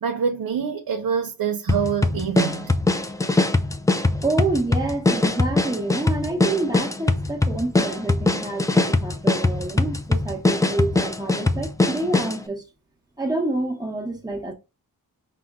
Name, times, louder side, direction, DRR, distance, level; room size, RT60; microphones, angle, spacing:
voice 1, 0.0-2.7, right 7 dB, 75° right, 0.7 m, -25 dB
sound 1, 1.7-12.4, left 2 dB, 10° left, 0.3 m, -22 dB
voice 2, 4.2-12.6 13.2-14.5, right 2 dB, 10° right, 1.0 m, -27 dB
5.7 x 2.1 x 3.5 m
wide cardioid pair, 165°, 36 cm